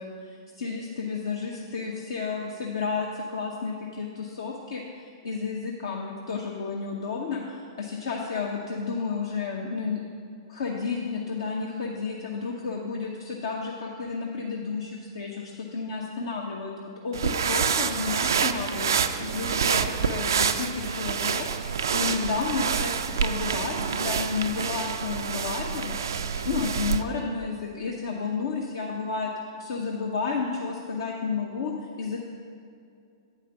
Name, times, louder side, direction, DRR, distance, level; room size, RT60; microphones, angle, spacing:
voice 1, 0.0-4.8 5.2-10.0 10.5-21.5 21.9-22.9 23.2-29.3 29.6-32.2, left 5 dB, 60° left, -1 dB, 0.7 m, -32 dB
sound 1, 17.1-27.0, right 6 dB, 65° right, 0.4 m, -27 dB
8.6 x 4.8 x 5.8 m, 2.4 s
figure-of-eight pair, 105°, 2 cm